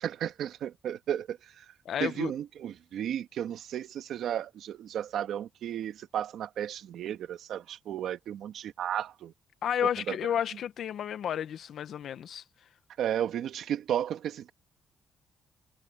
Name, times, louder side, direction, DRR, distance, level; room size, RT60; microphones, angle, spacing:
voice 1, 0.0-1.7 2.0-9.3 10.1-10.2 13.0-14.5, right 10 dB, 75° right, 1.7 m, -34 dB
voice 2, 1.8-2.3 9.6-12.4, left 9 dB, 65° left, 1.2 m, -31 dB
cardioid pair, 90°, 0 cm